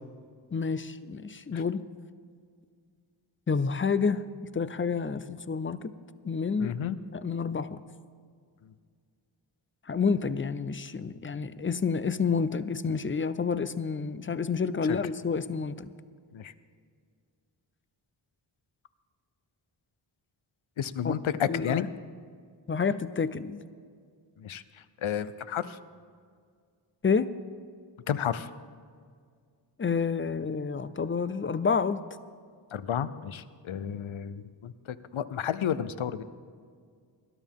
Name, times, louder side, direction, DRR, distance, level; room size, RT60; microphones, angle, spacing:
voice 1, 0.5-1.8 3.5-4.2 4.5-5.9 6.2-6.7 7.1-7.8 9.9-15.9 21.0-21.8 22.7-23.7 27.0-27.3 29.8-32.0, left 5 dB, 25° left, 15 dB, 0.5 m, -29 dB
voice 2, 6.6-7.0 8.6-8.7 14.9-15.0 16.3-16.5 20.8-21.9 24.4-25.8 28.1-28.5 32.7-36.2, left 9 dB, 80° left, 14 dB, 0.7 m, -32 dB
20.5 x 12.0 x 3.6 m, 2.1 s
wide cardioid pair, 95°, 47 cm